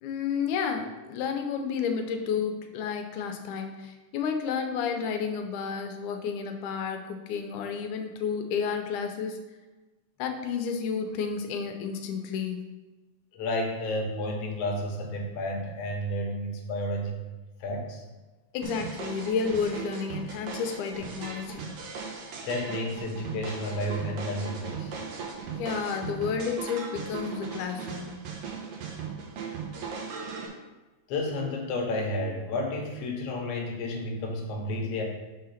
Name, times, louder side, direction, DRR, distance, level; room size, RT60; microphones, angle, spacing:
voice 1, 0.0-9.4 10.2-12.6 18.5-21.7 25.5-28.2, left 6 dB, 85° left, 5 dB, 2.2 m, -31 dB
voice 2, 13.3-17.2 17.6-18.0 22.4-25.0 31.1-35.0, left 1 dB, 65° left, 1 dB, 1.9 m, -31 dB
sound 1, 18.6-30.5, right 6 dB, 70° right, 1.9 m, -38 dB
5.6 x 3.8 x 5.7 m, 1.2 s
omnidirectional pair, 3.4 m